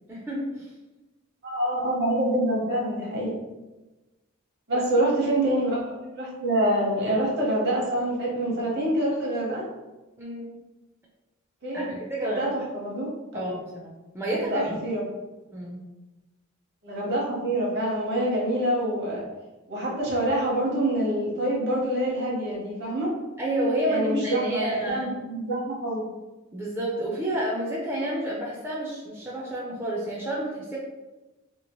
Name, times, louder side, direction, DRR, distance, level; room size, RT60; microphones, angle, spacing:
voice 1, 0.1-0.7 4.7-4.8 10.2-10.5 11.7-12.5 13.3-14.8 15.5-15.8 23.4-25.1 26.5-30.8, right 1 dB, 10° right, -5 dB, 0.4 m, -30 dB
voice 2, 1.4-3.3 4.7-5.9 6.2-9.6 11.6-11.9 12.2-13.5 14.3-15.0 16.8-19.2 19.7-23.1 23.9-26.1, right 1 dB, 55° right, -3 dB, 1.0 m, -26 dB
2.9 x 2.9 x 3.0 m, 1.1 s
head